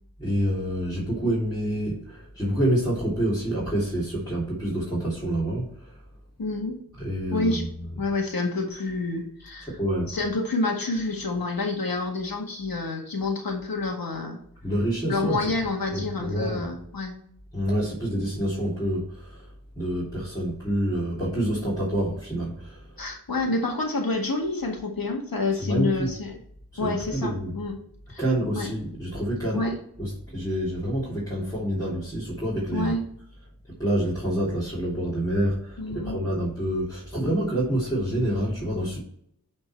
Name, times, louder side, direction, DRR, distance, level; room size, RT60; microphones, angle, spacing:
voice 1, 0.2-5.6 7.0-8.0 9.8-10.2 14.6-15.4 15.9-16.7 17.5-19.4 19.8-22.8 25.6-26.1 26.7-27.5 28.2-32.9 33.8-39.0, right 1 dB, 10° left, -9 dB, 3.5 m, -27 dB
voice 2, 6.4-6.8 7.3-7.7 8.0-9.8 10.1-14.4 15.1-17.2 23.0-26.4 26.8-27.7 28.1-28.2 28.5-28.7 29.5-29.8 32.7-33.0 35.8-36.2, left 2 dB, 75° left, 2 dB, 1.9 m, -28 dB
9.3 x 4.4 x 4.5 m, 0.67 s
wide cardioid pair, 60°, 35 cm